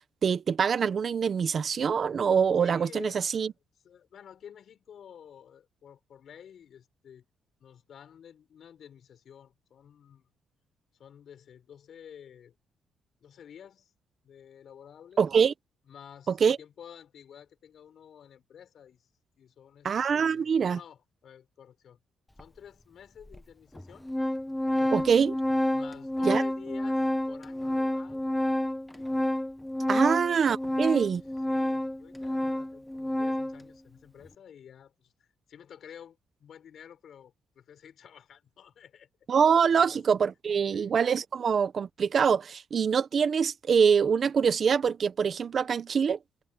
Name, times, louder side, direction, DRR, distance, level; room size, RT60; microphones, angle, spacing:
voice 1, 0.2-3.5 15.2-15.5 16.4-16.6 19.8-20.8 24.9-25.4 26.2-26.4 29.9-31.2 39.3-46.2, right 6 dB, 45° right, 1.0 m, -24 dB
voice 2, 2.6-3.5 3.8-7.3 7.6-10.3 11.0-12.5 13.2-13.9 14.2-15.3 15.9-19.1 19.4-22.0 22.4-24.1 24.8-25.1 25.7-28.3 28.9-29.1 29.9-30.2 31.2-39.1 39.4-40.0 40.7-41.0, left 8 dB, 60° left, 6.7 m, -51 dB
Organ, 22.4-22.5 23.3-23.4 23.8-33.6, left 1 dB, 5° left, 1.1 m, -29 dB
cardioid pair, 115°, 0 cm